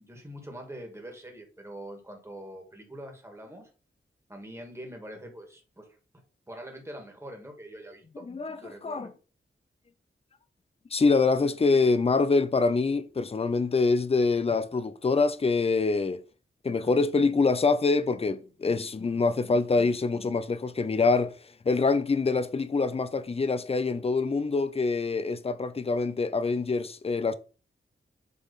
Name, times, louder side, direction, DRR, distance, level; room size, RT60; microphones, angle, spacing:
voice 1, 0.0-3.7 4.3-5.9 6.5-8.0 8.5-9.1 16.8-16.9, right 1 dB, 10° right, 2.0 m, -44 dB
voice 2, 8.3-9.1 10.9-16.2 16.6-21.4 21.7-27.3, left 4 dB, 30° left, 0.6 m, -25 dB
8.3 x 3.5 x 4.1 m
wide cardioid pair, 115°, 21 cm